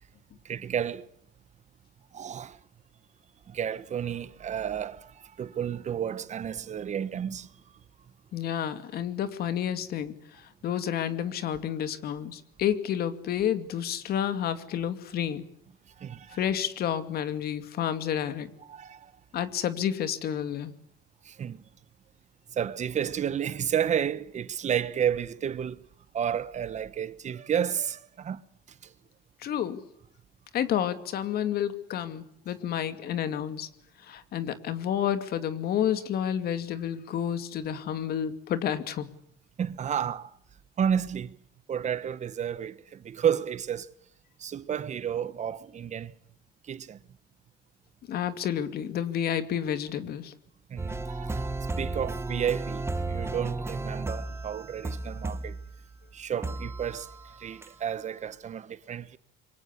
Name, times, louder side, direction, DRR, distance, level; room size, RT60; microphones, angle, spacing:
voice 1, 0.4-1.1 2.1-2.6 3.5-7.5 16.0-16.4 18.6-19.1 21.2-21.6 22.5-25.9 26.1-28.4 28.7-28.9 39.6-40.3 40.8-41.4 41.7-43.9 44.4-46.1 46.6-47.0 50.7-55.6 56.1-59.2, right 8 dB, 45° right, 1.3 m, -31 dB
voice 2, 8.3-15.4 16.3-18.5 19.3-20.7 29.4-29.8 30.5-33.7 34.0-39.1 48.1-50.3, left 9 dB, 65° left, 2.5 m, -30 dB
sound 1, 50.8-56.0 56.4-57.3 57.6-57.7, right 2 dB, 15° right, 1.4 m, -34 dB
27.0 x 24.0 x 8.4 m
cardioid pair, 110°, 17 cm